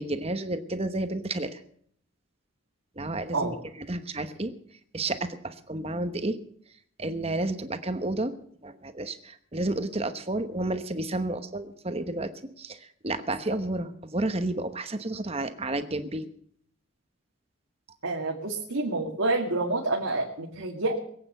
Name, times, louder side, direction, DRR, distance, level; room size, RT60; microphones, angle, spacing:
voice 1, 0.0-1.6 3.0-4.5 4.9-6.4 7.0-8.3 8.6-12.3 12.6-16.3, right 2 dB, 30° right, 9 dB, 1.1 m, -31 dB
voice 2, 18.0-21.0, right 2 dB, 85° right, -1 dB, 2.2 m, -28 dB
21.5 x 8.7 x 6.7 m, 0.63 s
head